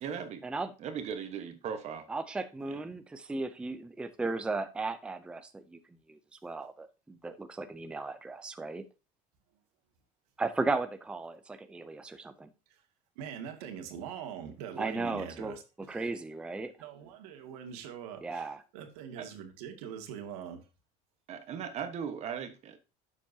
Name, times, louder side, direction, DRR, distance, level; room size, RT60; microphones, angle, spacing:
voice 1, 0.0-0.4 0.8-2.1 2.7-2.8 19.2-19.3 21.3-22.8, right 7 dB, 35° right, 1.3 m, -38 dB
voice 2, 2.1-5.8 6.1-8.8 10.4-12.5 14.8-15.6 15.9-16.7 18.2-18.6, right 3 dB, 5° right, 0.5 m, -36 dB
voice 3, 13.2-16.1 16.8-20.6, right 8 dB, 85° right, 2.3 m, -43 dB
11.5 x 7.4 x 2.8 m
cardioid pair, 165°, 19 cm